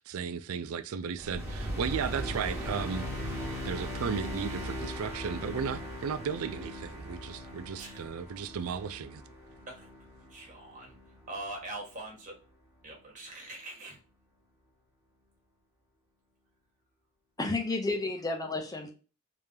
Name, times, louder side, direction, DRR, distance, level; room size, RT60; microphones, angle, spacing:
voice 1, 0.0-3.1 3.6-9.2, right 6 dB, 85° right, 0.4 m, -35 dB
sound 1, 1.2-11.6, equal, 10° right, 1.4 m, -39 dB
voice 2, 10.3-11.0 11.3-12.4 12.8-14.0, right 2 dB, 40° right, 1.5 m, -42 dB
voice 3, 17.4-18.9, left 3 dB, 20° left, 0.8 m, -31 dB
3.6 x 3.2 x 2.7 m
head